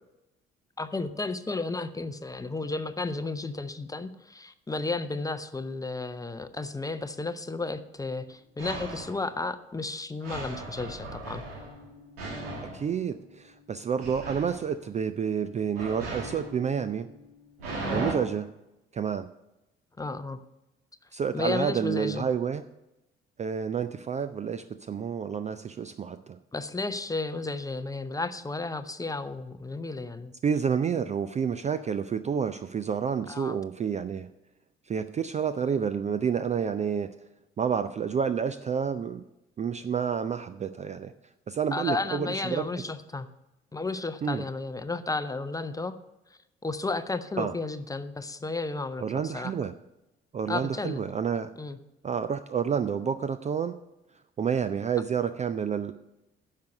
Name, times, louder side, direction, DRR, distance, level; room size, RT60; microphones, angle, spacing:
voice 1, 0.8-11.4 17.8-18.0 20.0-20.4 21.3-22.3 26.5-30.3 33.3-33.6 41.7-43.3 43.7-46.0 46.6-49.5 50.5-51.1 51.6-51.8, left 3 dB, 10° left, 11 dB, 0.7 m, -33 dB
fear noise, 8.6-9.2 10.2-13.5 14.0-14.7 15.7-18.1, right 2 dB, 75° right, 1.7 m, -37 dB
voice 2, 12.7-17.1 17.9-18.5 18.9-19.3 21.1-22.6 23.4-26.4 30.4-34.3 34.9-37.1 37.6-39.2 39.6-41.1 41.5-42.7 44.2-44.4 47.4-47.5 49.0-49.7 50.3-51.5 52.0-53.7 54.4-55.9, right 7 dB, 25° right, 13 dB, 0.4 m, -29 dB
10.5 x 6.6 x 6.5 m, 0.94 s
figure-of-eight pair, 50°, 30 cm